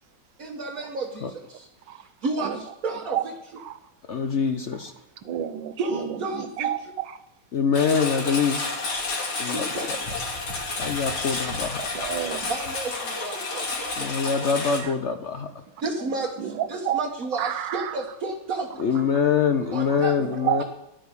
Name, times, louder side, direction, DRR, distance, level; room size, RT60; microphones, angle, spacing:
voice 1, 0.4-1.7 2.2-3.2 5.8-6.7 9.5-9.9 10.5-10.6 12.5-14.2 15.8-18.7 19.7-20.1, right 3 dB, 45° right, 0 dB, 1.6 m, -31 dB
voice 2, 2.4-2.7 3.0-3.3 3.6-3.8 5.2-7.2 11.8-12.5 14.6-14.9 16.0-17.0 17.4-18.0 19.9-20.6, right 11 dB, 65° right, 11 dB, 1.5 m, -31 dB
voice 3, 4.1-4.9 7.5-8.6 9.4-10.0 10.8-11.8 14.0-15.5 18.8-20.6, left 6 dB, 70° left, 7 dB, 0.6 m, -24 dB
Engine, 7.7-14.8, left 3 dB, 90° left, 3.3 m, -30 dB
12.0 x 9.3 x 6.8 m, 0.87 s
omnidirectional pair, 2.3 m